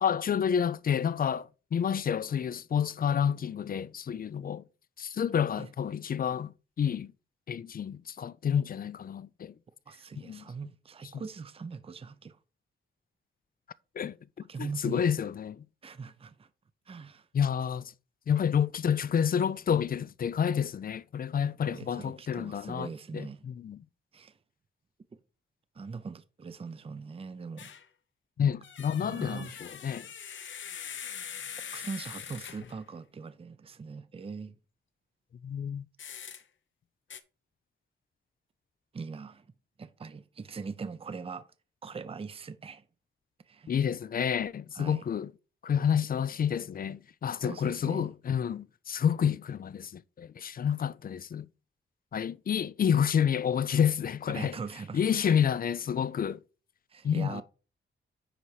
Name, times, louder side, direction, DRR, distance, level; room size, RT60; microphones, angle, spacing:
voice 1, 0.0-4.6 5.0-6.5 6.8-7.1 7.5-9.5 10.2-10.4 14.0-14.2 14.6-15.6 17.3-17.9 18.3-23.8 28.4-30.1 35.4-35.9 43.7-45.3 45.6-51.5 52.1-54.5 54.9-56.4 57.0-57.4, left 8 dB, 45° left, 0.4 m, -29 dB
voice 2, 9.9-12.4 14.5-15.1 15.8-16.5 16.9-17.3 21.7-23.4 24.1-24.4 25.7-27.7 29.0-29.5 31.7-34.6 38.9-39.5 39.8-41.4 41.8-42.8 43.4-43.7 44.7-45.0 47.4-48.1 54.3-55.4 56.9-57.4, right 5 dB, 25° right, 0.6 m, -41 dB
sound 1, 27.6-27.9 28.6-32.8 36.0-36.4 37.1-37.2, left 8 dB, 65° left, 0.8 m, -42 dB
10.0 x 4.0 x 4.8 m
wide cardioid pair, 105°, 21 cm